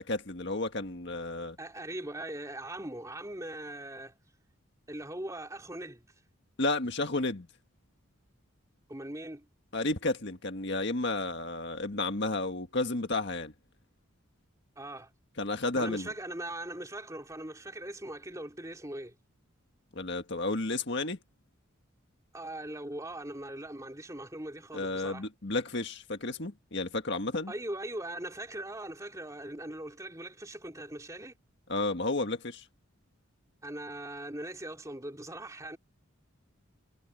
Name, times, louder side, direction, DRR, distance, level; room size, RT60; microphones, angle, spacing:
voice 1, 0.0-1.6 6.6-7.5 9.7-13.5 15.4-16.1 19.9-21.2 24.7-27.5 31.7-32.7, left 2 dB, 55° left, 1.7 m, -32 dB
voice 2, 1.6-4.1 4.9-6.0 8.9-9.5 14.8-15.1 15.8-19.1 22.3-25.2 27.5-31.3 33.6-35.8, right 1 dB, 15° right, 3.4 m, -40 dB
head